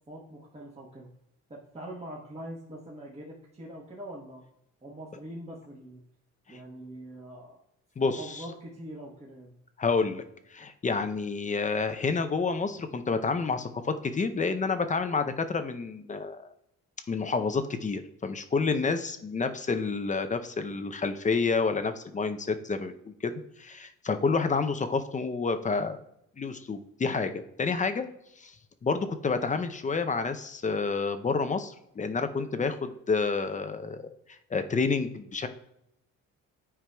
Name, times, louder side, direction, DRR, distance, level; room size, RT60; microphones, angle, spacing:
voice 1, 0.1-1.1 1.5-4.4 4.8-6.0 6.5-7.6 8.0-9.5 32.5-32.8, right 1 dB, 20° right, -5 dB, 1.2 m, -43 dB
voice 2, 8.0-8.4 9.8-10.2 10.5-16.5 17.1-26.0 26.4-28.0 28.4-28.6 28.8-35.5, left 4 dB, 25° left, 9 dB, 0.5 m, -29 dB
9.0 x 4.6 x 2.2 m, 0.77 s
cardioid pair, 90°, 30 cm